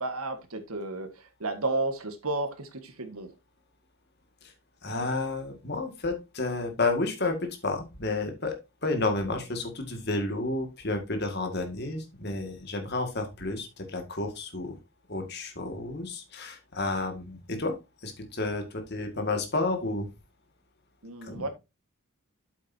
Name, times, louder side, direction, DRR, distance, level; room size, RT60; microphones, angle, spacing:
voice 1, 0.0-3.3 21.0-21.5, right 2 dB, 80° right, 1.6 m, -32 dB
voice 2, 4.8-14.8 15.1-20.1 21.2-21.5, left 2 dB, 50° left, 2.0 m, -31 dB
8.4 x 8.1 x 2.7 m
head